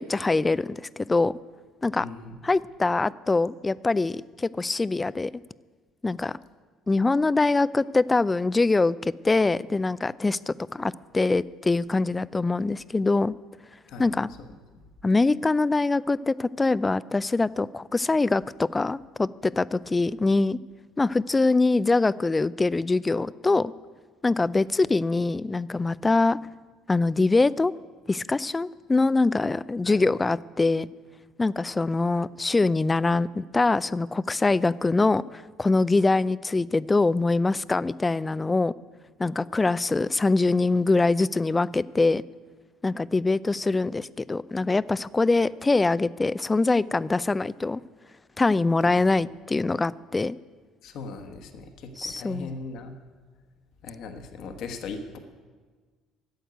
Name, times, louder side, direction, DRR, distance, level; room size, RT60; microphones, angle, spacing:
voice 1, 0.0-1.3 1.8-2.0 2.4-5.3 6.0-6.4 6.9-13.3 14.0-14.3 15.0-20.6 21.0-23.7 24.2-26.4 26.9-27.7 28.1-30.9 31.4-38.7 39.2-42.2 42.8-47.8 48.4-50.4 52.0-52.5, left 3 dB, 20° left, 19 dB, 0.4 m, -23 dB
voice 2, 2.0-2.4 13.9-14.5 29.8-30.0 48.8-48.9 50.8-52.9 53.8-55.2, left 4 dB, 60° left, 6 dB, 1.3 m, -39 dB
12.0 x 7.9 x 9.4 m, 1.5 s
hypercardioid pair, 60°, 0 cm